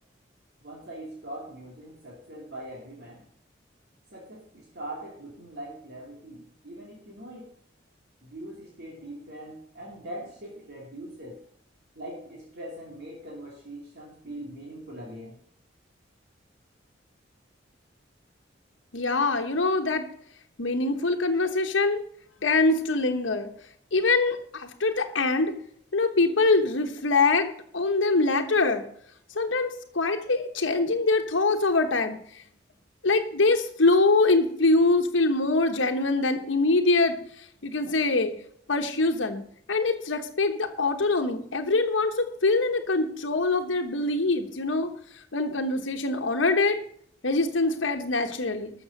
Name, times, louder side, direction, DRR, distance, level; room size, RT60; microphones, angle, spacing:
voice 1, 0.6-3.2 4.1-7.5 8.2-11.4 11.9-15.4, right 1 dB, 60° right, -2 dB, 2.7 m, -41 dB
voice 2, 18.9-20.1 20.6-22.0 22.4-23.5 23.9-25.5 25.9-27.5 27.7-28.8 29.3-32.4 33.0-38.3 38.7-39.4 39.7-44.9 45.3-46.8 47.2-48.7, left 3 dB, 85° left, 5 dB, 1.2 m, -24 dB
13.0 x 7.1 x 6.5 m, 0.65 s
head